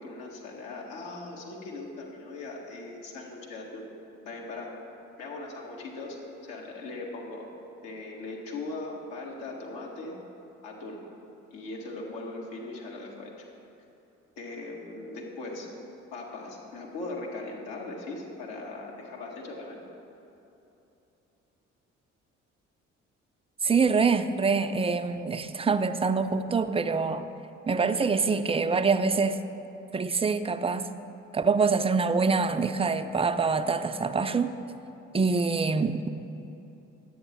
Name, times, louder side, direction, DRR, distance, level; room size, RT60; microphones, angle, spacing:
voice 1, 0.0-3.9 4.2-4.7 5.2-6.2 6.4-7.5 7.8-10.2 10.6-11.0 11.5-13.3 14.4-15.7 16.1-19.8, left 2 dB, 70° left, -1 dB, 1.6 m, -39 dB
voice 2, 23.6-27.2 27.7-29.4 29.9-30.9 31.3-34.5 35.1-36.1, right 4 dB, 15° right, 9 dB, 0.5 m, -25 dB
10.0 x 8.6 x 4.3 m, 3.0 s
figure-of-eight pair, 45°, 37 cm